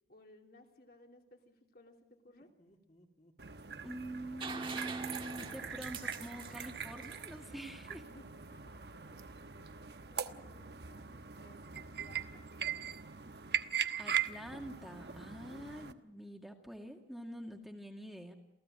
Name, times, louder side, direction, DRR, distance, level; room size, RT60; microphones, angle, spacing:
voice 1, 0.1-2.5 7.9-9.2 9.5-12.5 15.4-15.7, left 1 dB, 55° left, 2 dB, 3.1 m, -60 dB
Laughter, 2.2-8.2, left 1 dB, 40° left, 2.6 m, -66 dB
sound 1, 3.4-15.9, right 7 dB, 65° right, 1.1 m, -41 dB
voice 2, 3.8-8.0 14.0-18.3, right 1 dB, ahead, 2 dB, 2.0 m, -45 dB
sound 2, 4.4-8.1 10.0-10.1, right 4 dB, 30° right, 1.7 m, -45 dB
28.0 x 16.0 x 8.9 m, 0.95 s
head